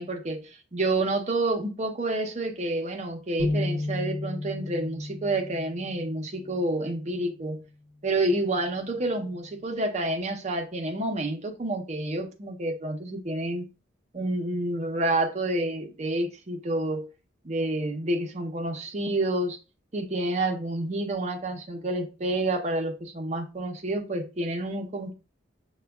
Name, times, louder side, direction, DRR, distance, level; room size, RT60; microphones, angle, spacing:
voice 1, 0.0-7.6 8.0-13.7 14.1-17.1 17.4-19.6 19.9-25.1, right 2 dB, 35° right, 0.6 m, -29 dB
sound 1, 3.4-6.9, left 2 dB, 75° left, 0.8 m, -33 dB
5.9 x 2.2 x 2.2 m
head